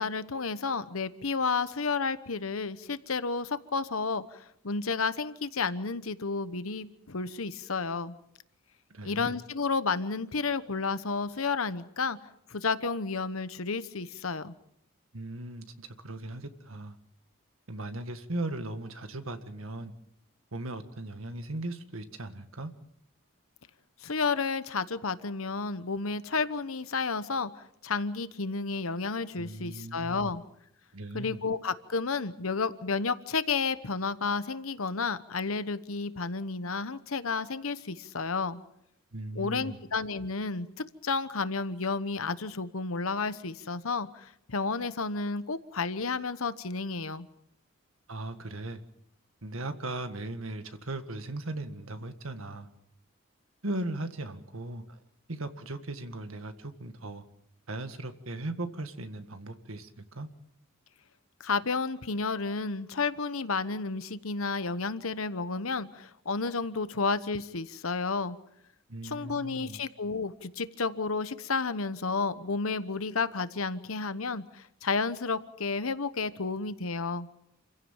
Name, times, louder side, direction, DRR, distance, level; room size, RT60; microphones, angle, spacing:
voice 1, 0.0-8.1 9.0-12.2 12.5-14.5 24.0-27.5 27.8-30.4 31.1-38.6 39.4-40.7 41.0-47.3 61.4-68.4 69.0-77.3, left 4 dB, 90° left, 1.1 m, -31 dB
voice 2, 8.9-9.4 15.1-17.0 17.7-19.9 20.5-22.7 29.4-30.4 30.9-31.4 39.1-39.8 48.1-48.8 49.4-52.7 53.6-55.0 55.3-57.2 57.7-60.3 68.9-69.8, right 2 dB, 80° right, 1.8 m, -38 dB
28.0 x 16.0 x 7.4 m
head